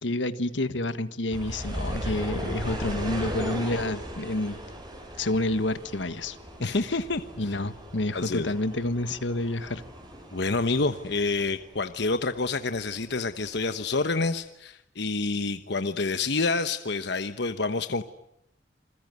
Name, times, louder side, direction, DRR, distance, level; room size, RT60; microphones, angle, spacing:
voice 1, 0.0-4.6 5.2-6.4 6.6-7.0 7.4-9.8, left 2 dB, 85° left, 12 dB, 1.5 m, -29 dB
sound 1, 1.3-12.5 12.8-13.9 14.4-14.5, equal, 25° right, 7.5 m, -37 dB
voice 2, 6.6-7.6 8.1-8.5 10.3-18.0, left 3 dB, 65° left, 10 dB, 1.1 m, -28 dB
28.0 x 21.5 x 9.4 m, 0.82 s
head